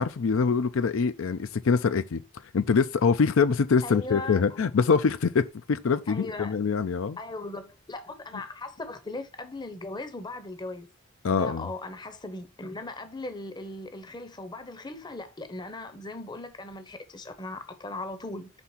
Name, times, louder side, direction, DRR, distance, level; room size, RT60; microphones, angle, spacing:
voice 1, 0.0-2.2 2.5-7.2 11.2-11.7, left 5 dB, 70° left, 0.5 m, -24 dB
voice 2, 3.8-4.6 6.1-6.6 7.2-10.9 11.3-18.5, left 2 dB, 20° left, 0.7 m, -38 dB
6.0 x 3.5 x 5.6 m
head